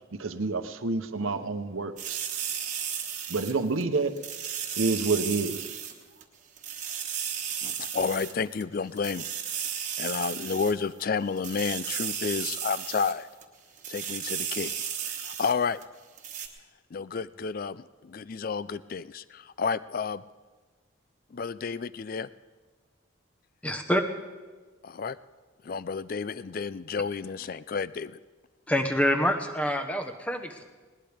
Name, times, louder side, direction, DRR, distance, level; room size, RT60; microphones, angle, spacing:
voice 1, 0.1-2.2 3.3-4.2 4.8-5.7, right 3 dB, 80° right, 9 dB, 0.9 m, -28 dB
sound 1, 2.0-3.8 4.2-5.9 6.2-6.3 6.6-8.3 8.6-8.7 9.0-11.0 11.4-13.1 13.4-13.5 13.8-15.5 15.8-15.9 16.2-16.5, right 8 dB, 40° right, 1.3 m, -34 dB
voice 2, 7.6-9.3 10.0-13.3 13.9-14.7 15.0-15.8 16.9-20.2 21.3-22.3 24.8-25.2 25.6-28.2, left 5 dB, 45° left, 17 dB, 0.4 m, -31 dB
voice 3, 23.6-24.0 28.7-30.6, equal, 5° left, 6 dB, 1.0 m, -26 dB
20.0 x 18.5 x 3.5 m, 1.3 s
head